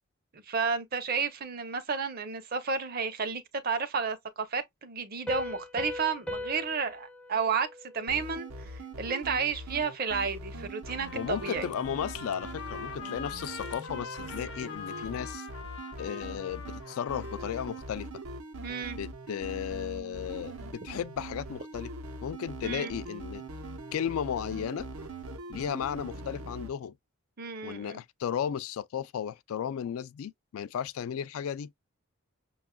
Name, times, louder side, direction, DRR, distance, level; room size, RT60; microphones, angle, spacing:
voice 1, 0.3-7.7 7.9-8.7 9.0-11.7 18.6-19.0 22.6-22.9 27.4-28.0, right 5 dB, 45° right, 0.5 m, -32 dB
Piano, 5.3-8.7, left 1 dB, 5° left, 0.4 m, -40 dB
sound 1, 8.1-26.7, right 2 dB, 90° right, 0.8 m, -42 dB
Trumpet, 10.8-18.0, left 6 dB, 55° left, 0.7 m, -44 dB
voice 2, 11.1-15.5 16.0-18.1 19.0-21.9 22.2-23.4 23.9-24.9 25.5-26.9 27.6-31.7, left 8 dB, 75° left, 0.3 m, -34 dB
5.9 x 2.3 x 2.2 m
head